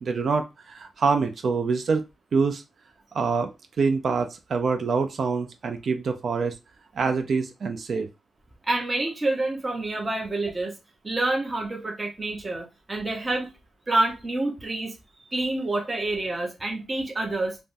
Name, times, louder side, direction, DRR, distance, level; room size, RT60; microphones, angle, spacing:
voice 1, 0.0-2.0 2.3-2.6 3.1-3.5 3.8-6.5 6.9-8.1, right 5 dB, 60° right, 0.4 m, -25 dB
voice 2, 8.6-10.8 11.0-13.5 13.9-14.9 15.3-17.6, right 2 dB, 25° right, 0.7 m, -27 dB
3.4 x 2.0 x 2.5 m
cardioid pair, 90°, 0 cm